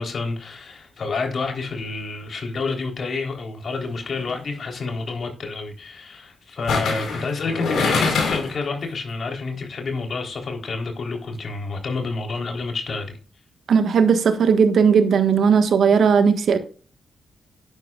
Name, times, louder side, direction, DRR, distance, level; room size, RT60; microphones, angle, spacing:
voice 1, 0.0-13.2, left 3 dB, 60° left, 3.6 m, -29 dB
sound 1, 4.0-4.3 6.7-8.6 9.0-9.1, left 4 dB, 75° left, 4.2 m, -24 dB
voice 2, 13.7-16.6, right 6 dB, 70° right, 1.5 m, -17 dB
11.0 x 10.5 x 2.4 m
supercardioid pair, 50°, 0 cm